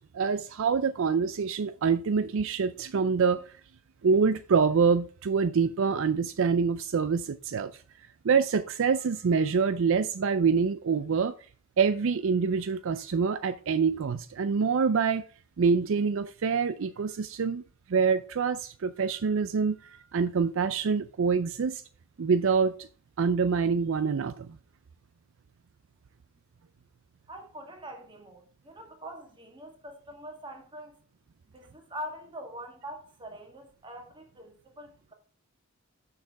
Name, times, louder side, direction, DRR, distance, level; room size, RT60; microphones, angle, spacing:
voice 1, 0.1-3.4 4.0-7.7 8.2-11.3 11.8-15.2 15.6-17.6 17.9-21.8 22.2-22.9 23.2-24.6, right 5 dB, 65° right, 0.4 m, -26 dB
voice 2, 27.3-31.0 31.5-35.1, equal, 25° right, 1.8 m, -43 dB
6.6 x 6.5 x 4.7 m
head